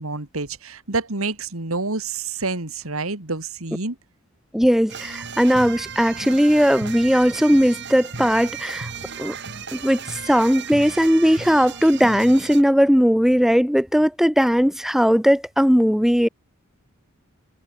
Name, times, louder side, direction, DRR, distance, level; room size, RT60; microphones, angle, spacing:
voice 1, 0.0-4.0, right 3 dB, 85° right, 2.7 m, -28 dB
voice 2, 4.5-8.9 9.2-9.3 9.7-16.3, equal, ahead, 1.2 m, -18 dB
sound 1, 4.9-12.6, right 5 dB, 55° right, 4.8 m, -35 dB
head